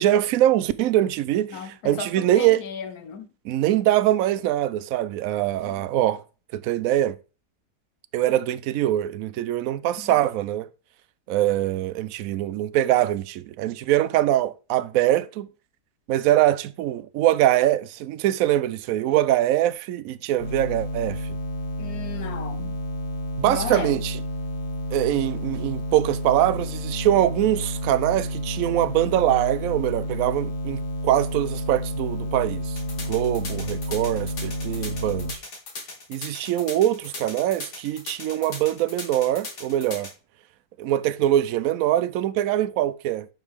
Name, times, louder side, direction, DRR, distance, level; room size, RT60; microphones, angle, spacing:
voice 1, 0.0-2.6 3.4-6.2 6.5-7.1 8.1-10.7 11.3-15.5 16.1-21.4 23.4-24.2 24.9-32.8 33.1-35.4 36.1-40.1 40.8-43.3, right 13 dB, 70° right, 0.9 m, -23 dB
voice 2, 1.5-3.3 5.6-5.8 10.0-10.1 21.8-22.8 23.4-24.0, left 6 dB, 70° left, 1.5 m, -35 dB
sound 1, 20.4-35.3, equal, 45° left, 1.3 m, -30 dB
sound 2, 32.8-40.1, left 3 dB, 85° left, 2.6 m, -37 dB
10.5 x 5.0 x 3.6 m
omnidirectional pair, 1.7 m